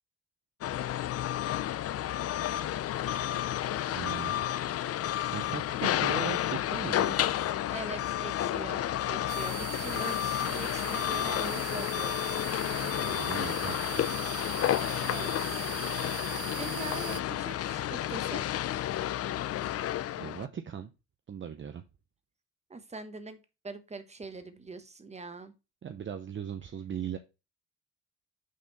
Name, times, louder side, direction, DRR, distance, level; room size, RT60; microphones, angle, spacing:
sound 1, 0.6-20.5, left 12 dB, 50° left, 0.5 m, -31 dB
Bowed string instrument, 2.9-9.4, left 6 dB, 20° left, 1.4 m, -53 dB
voice 1, 3.9-4.4 5.3-7.2 12.8-14.1 20.2-20.9 21.3-21.8 25.8-27.2, right 8 dB, 40° right, 8 dB, 0.7 m, -39 dB
voice 2, 7.7-12.4 15.0-15.6 16.6-18.4 22.7-23.4 23.6-25.5, right 3 dB, 20° right, 9 dB, 1.2 m, -42 dB
sound 2, 9.3-17.2, right 16 dB, 75° right, 0.4 m, -41 dB
6.3 x 4.2 x 4.1 m, 0.28 s
cardioid pair, 90°, 30 cm